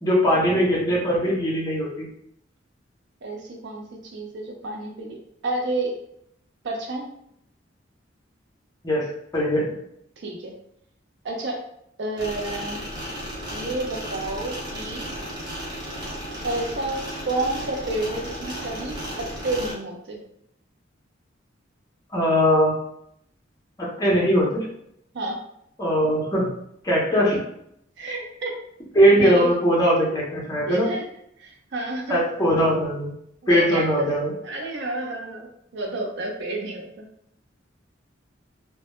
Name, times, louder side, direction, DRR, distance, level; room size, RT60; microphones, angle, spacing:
voice 1, 0.0-2.1 8.8-9.1 9.3-9.7 22.1-22.8 23.8-24.7 25.8-26.5 26.8-27.4 28.9-30.9 32.1-33.1 33.5-34.3, equal, 20° left, -4 dB, 0.6 m, -20 dB
voice 2, 3.2-5.2 5.4-5.9 6.6-7.1 10.2-10.5 11.2-11.6 12.0-12.8 13.5-15.1 16.4-19.0 19.4-20.2 25.1-25.4 28.0-28.6 29.1-29.5 30.7-31.0 31.4-32.2 33.4-34.1 34.4-37.1, right 2 dB, 65° right, 1 dB, 0.5 m, -30 dB
sound 1, 12.2-19.7, equal, 25° right, 0.6 m, -34 dB
2.1 x 2.0 x 2.9 m, 0.73 s
head